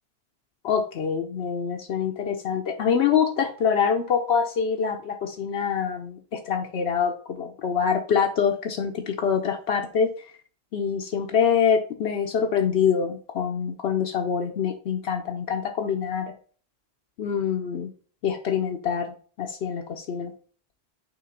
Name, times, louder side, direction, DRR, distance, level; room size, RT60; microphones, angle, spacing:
voice 1, 0.6-10.1 10.7-16.3 17.2-17.9 18.2-19.1 19.4-20.3, left 7 dB, 80° left, 2 dB, 0.9 m, -25 dB
5.9 x 3.1 x 5.0 m, 0.42 s
omnidirectional pair, 1.1 m